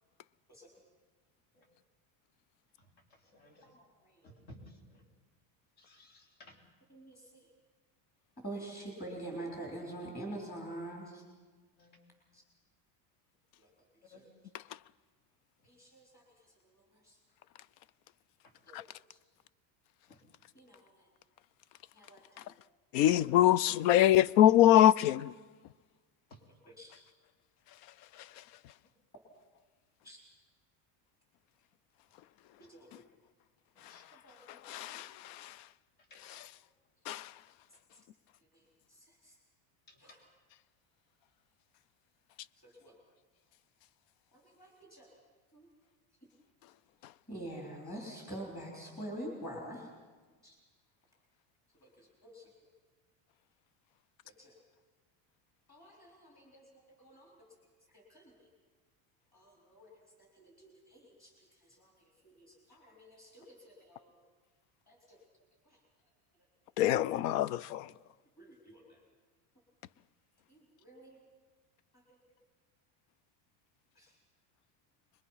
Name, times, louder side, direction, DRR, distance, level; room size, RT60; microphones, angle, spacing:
voice 1, 2.8-3.7 4.2-5.0 5.8-6.6 11.8-12.0 14.1-14.2 18.4-18.5 20.1-20.2 26.3-26.4 33.8-34.0 39.9-40.0, left 1 dB, 65° left, 4.0 m, -57 dB
voice 2, 3.6-4.2 6.9-7.5 8.4-11.2 12.3-12.4 13.6-13.7 14.1-14.3 15.6-16.2 16.6-16.8 17.0-17.2 18.7-18.8 19.1-19.2 20.6-21.1 21.9-22.5 26.7-26.9 30.0-30.2 32.7-32.9 34.2-35.0 38.5-39.3 40.0-40.2 42.6-42.9 44.3-45.2 45.5-45.7 47.3-49.9 50.4-50.6 51.8-52.5 54.2-54.5 55.7-57.4 57.9-58.5 59.3-61.3 61.6-61.9 62.2-64.1 64.9-65.2 65.6-65.8 68.4-69.0 70.5-71.2 74.0-74.1, right 1 dB, 20° left, 3.7 m, -47 dB
voice 3, 22.9-25.3 34.7-35.5 37.1-37.3 66.8-67.9, left 12 dB, 85° left, 0.6 m, -24 dB
24.0 x 21.5 x 5.7 m
cardioid pair, 155°, 50 cm